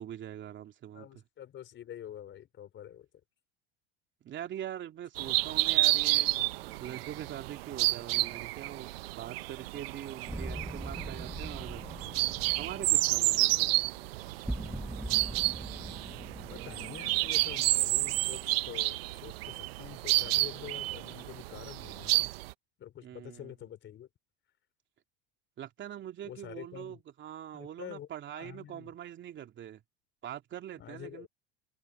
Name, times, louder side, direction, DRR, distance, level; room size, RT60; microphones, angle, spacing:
voice 1, 0.0-1.2 4.2-11.8 12.6-13.7 23.0-23.5 25.6-29.8 30.2-31.3, right 11 dB, 40° right, 2.9 m, -43 dB
voice 2, 0.9-3.1 5.2-5.3 16.5-22.3 22.8-24.1 26.2-27.0 27.5-28.9 30.8-31.3, left 10 dB, 40° left, 4.6 m, -47 dB
sound 1, 5.2-22.5, right 20 dB, 85° right, 0.7 m, -30 dB
sound 2, 10.3-19.2, right 1 dB, 5° right, 1.2 m, -42 dB
supercardioid pair, 105°, 29 cm